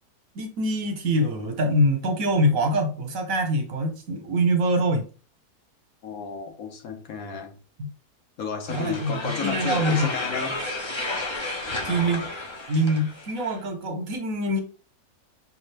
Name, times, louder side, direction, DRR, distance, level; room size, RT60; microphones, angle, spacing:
voice 1, 0.3-5.1 7.8-7.9 8.7-10.1 11.8-12.2 12.7-14.6, equal, 65° right, 1.2 m, -24 dB
voice 2, 6.0-7.6 8.4-10.6, left 5 dB, 65° left, 1.2 m, -32 dB
sound 1, 8.7-13.6, left 2 dB, 35° left, 0.5 m, -32 dB
5.6 x 2.5 x 3.3 m
omnidirectional pair, 1.6 m